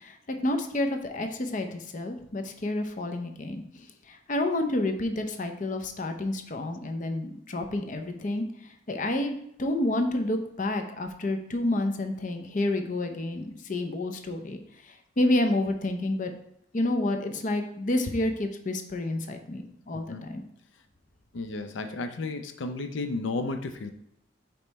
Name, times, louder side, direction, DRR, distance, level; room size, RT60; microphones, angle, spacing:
voice 1, 0.0-14.6 14.9-16.3 16.7-20.4, left 1 dB, 45° left, 6 dB, 0.6 m, -29 dB
voice 2, 21.3-23.9, left 3 dB, 90° left, 8 dB, 0.5 m, -33 dB
5.3 x 4.3 x 4.1 m, 0.76 s
head